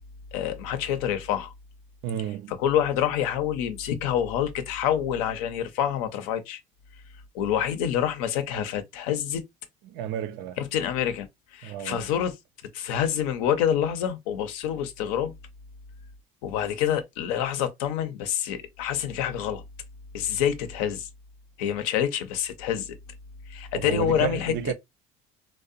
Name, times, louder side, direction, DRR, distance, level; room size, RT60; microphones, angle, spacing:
voice 1, 0.3-1.5 2.6-6.6 7.3-9.4 10.6-12.3 12.7-15.3 16.4-19.6 20.1-21.1 21.6-23.0 23.5-24.7, left 9 dB, 85° left, 0.5 m, -27 dB
voice 2, 2.0-2.5 9.8-10.6 11.6-12.1 23.7-24.7, right 11 dB, 70° right, 0.4 m, -32 dB
2.7 x 2.0 x 2.4 m
supercardioid pair, 85°, 18 cm